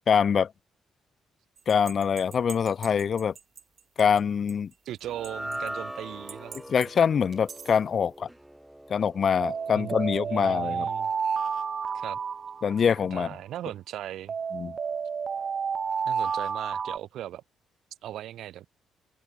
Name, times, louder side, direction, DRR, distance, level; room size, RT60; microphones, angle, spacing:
voice 1, 0.1-0.5 1.7-3.3 4.0-4.7 6.7-8.3 8.9-10.9 12.6-13.3 14.5-14.7, left 7 dB, 50° left, 0.6 m, -24 dB
sound 1, 1.7-3.6 4.0-4.1 4.5-4.6 5.2-5.7 6.3-6.8 7.3-7.7 9.4-13.2 14.3-17.0, right 6 dB, 45° right, 0.6 m, -31 dB
voice 2, 4.8-6.6 9.7-11.1 11.9-12.2 13.1-14.3 16.0-17.4 18.0-18.7, right 12 dB, 80° right, 2.6 m, -38 dB
sound 2, 5.0-11.4, right 1 dB, 5° right, 3.9 m, -42 dB
open air
cardioid pair, 90°, 0 cm